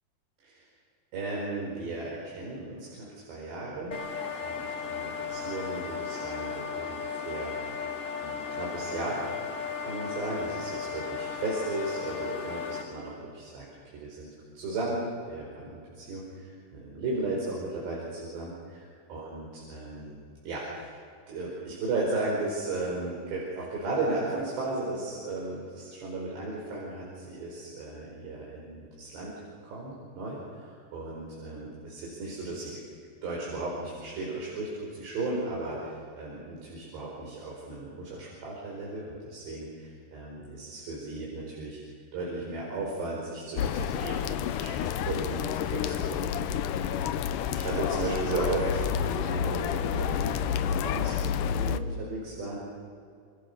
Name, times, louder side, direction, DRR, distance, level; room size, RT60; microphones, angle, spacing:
voice 1, 1.1-4.0 4.4-7.9 8.2-13.6 13.9-14.3 14.6-20.2 20.5-20.9 21.3-29.3 29.6-32.8 33.2-51.2 51.5-52.6, right 2 dB, 80° right, -4 dB, 7.0 m, -35 dB
sound 1, 3.9-12.8, left 6 dB, 20° left, 3.0 m, -35 dB
sound 2, 43.6-51.8, left 9 dB, 90° left, 1.9 m, -29 dB
29.0 x 26.0 x 6.8 m, 2.3 s
omnidirectional pair, 4.9 m